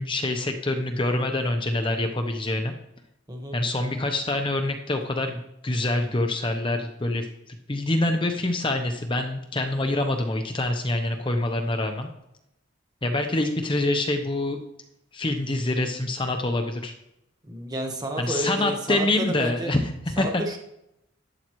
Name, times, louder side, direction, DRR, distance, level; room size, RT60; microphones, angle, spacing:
voice 1, 0.0-2.7 3.5-12.1 13.0-14.6 15.1-16.9 18.2-20.4, left 2 dB, 25° left, 4 dB, 0.8 m, -26 dB
voice 2, 3.3-3.6 17.4-19.7 20.2-20.6, right 1 dB, 20° right, 3 dB, 1.4 m, -31 dB
11.5 x 9.4 x 3.1 m, 0.83 s
head